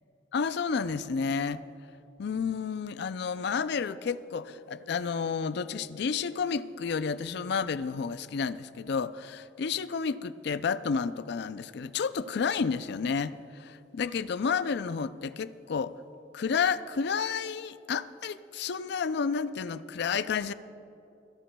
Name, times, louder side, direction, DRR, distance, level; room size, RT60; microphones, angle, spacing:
voice 1, 0.3-1.6 2.2-15.9 16.3-20.5, left 5 dB, 65° left, 15 dB, 0.4 m, -31 dB
27.0 x 11.0 x 2.3 m, 2.9 s
head